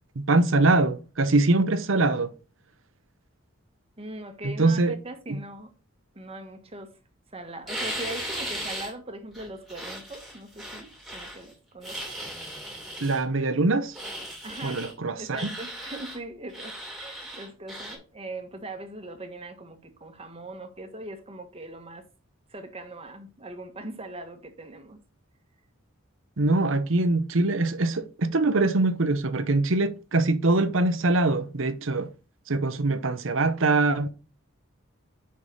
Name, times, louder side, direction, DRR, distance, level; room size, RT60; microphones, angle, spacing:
voice 1, 0.2-2.3 4.4-4.9 13.0-13.9 14.6-15.5 26.4-32.1 32.5-34.1, right 2 dB, 70° right, 0.8 m, -23 dB
voice 2, 4.0-5.7 6.1-7.0 7.3-12.0 14.4-14.8 15.2-22.0 22.5-25.0, right 1 dB, 30° right, 1.3 m, -40 dB
sound 1, 7.7-8.9 9.3-11.4 11.8-13.2 13.9-14.9 15.3-16.2 16.5-18.0, right 1 dB, ahead, 3.0 m, -37 dB
5.7 x 4.9 x 5.5 m
head